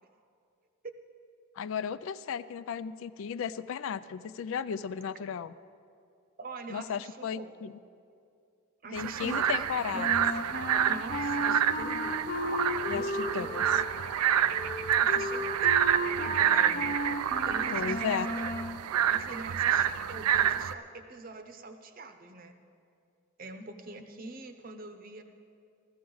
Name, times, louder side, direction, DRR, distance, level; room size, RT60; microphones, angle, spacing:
voice 1, 1.6-5.5 6.7-7.7 8.9-10.1 12.9-13.8 17.7-18.3, left 7 dB, 65° left, 15 dB, 0.3 m, -35 dB
voice 2, 6.4-7.7 8.8-9.7 9.9-10.1 10.9-12.2 12.9-13.8 15.0-15.8 16.2-16.9 17.5-18.5 19.1-22.5 23.4-25.2, right 3 dB, 40° right, 7 dB, 0.7 m, -44 dB
sound 1, 9.0-20.7, right 9 dB, 90° right, 0.4 m, -28 dB
Wind instrument woodwind instrument, 9.9-18.8, left 1 dB, 40° left, 0.7 m, -35 dB
15.0 x 14.5 x 3.9 m, 2.4 s
head